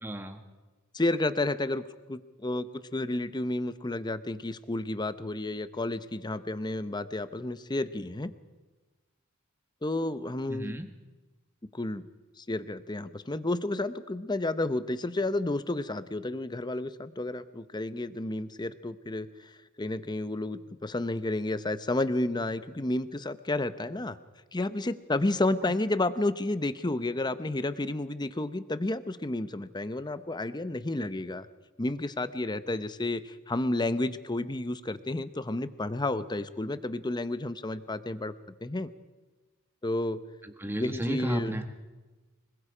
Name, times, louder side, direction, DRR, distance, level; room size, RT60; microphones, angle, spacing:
voice 1, 0.0-0.4 10.5-10.9 40.4-41.7, right 1 dB, 10° right, 6 dB, 1.5 m, -33 dB
voice 2, 0.9-1.8 2.1-8.3 9.8-10.7 11.7-12.0 12.4-24.2 24.5-31.5 31.8-38.3 38.6-38.9 39.8-40.2 40.8-41.6, left 2 dB, 20° left, 13 dB, 0.8 m, -31 dB
25.5 x 21.5 x 5.0 m, 1.2 s
head